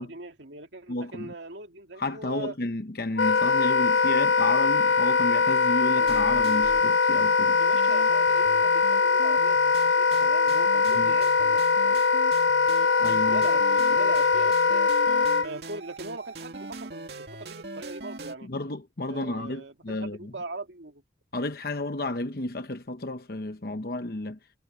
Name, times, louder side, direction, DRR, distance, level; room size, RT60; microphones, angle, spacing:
voice 1, 0.0-2.5 7.6-12.0 12.8-12.9 13.3-14.8 15.4-18.5 19.1-21.0, right 2 dB, 85° right, 2.4 m, -40 dB
voice 2, 0.9-1.3 2.0-7.6 10.9-11.2 13.0-13.4 18.4-20.3 21.3-24.4, left 2 dB, 55° left, 0.9 m, -32 dB
Wind instrument woodwind instrument, 3.2-15.5, left 4 dB, 90° left, 0.6 m, -22 dB
sound 1, 6.0-18.4, right 2 dB, 65° right, 2.4 m, -41 dB
head